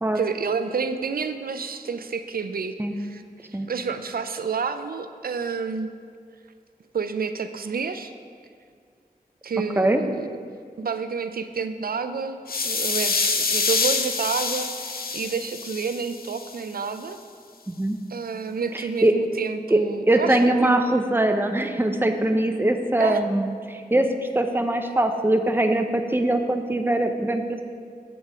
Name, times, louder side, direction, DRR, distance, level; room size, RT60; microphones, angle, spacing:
voice 1, 0.1-5.9 6.9-8.1 9.4-10.3 10.8-17.2 18.1-20.7 23.0-23.2, right 5 dB, 70° right, 9 dB, 0.4 m, -29 dB
sound 1, 12.5-16.5, left 4 dB, 70° left, 0.6 m, -26 dB
voice 2, 17.7-18.0 18.7-19.1 19.7-19.8 20.1-24.1 24.3-27.7, right 1 dB, 15° right, 6 dB, 0.6 m, -22 dB
7.3 x 5.1 x 4.8 m, 2.2 s
wide cardioid pair, 55°, 16 cm